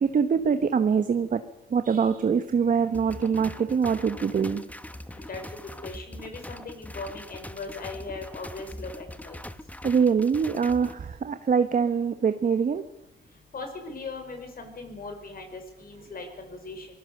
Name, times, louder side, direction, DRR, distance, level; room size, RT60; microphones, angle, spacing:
voice 1, 0.0-1.4 1.7-4.7 9.8-12.8, right 6 dB, 45° right, 9 dB, 1.2 m, -24 dB
sound 1, 2.9-10.9, left 1 dB, 5° left, 1.1 m, -42 dB
voice 2, 5.8-9.4 13.5-16.9, left 3 dB, 45° left, 5 dB, 5.7 m, -39 dB
23.5 x 19.0 x 6.7 m, 0.91 s
cardioid pair, 90°, 20 cm